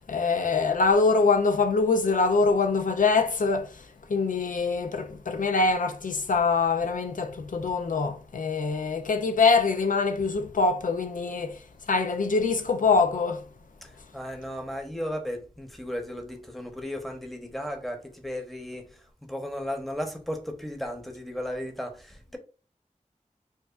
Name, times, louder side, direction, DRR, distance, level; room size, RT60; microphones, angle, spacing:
voice 1, 0.1-3.8 4.1-11.6 11.9-13.4, left 4 dB, 90° left, 0.4 m, -24 dB
voice 2, 13.8-19.0 19.3-22.4, equal, ahead, 0.9 m, -35 dB
4.7 x 2.4 x 2.4 m
wide cardioid pair, 45°, 13 cm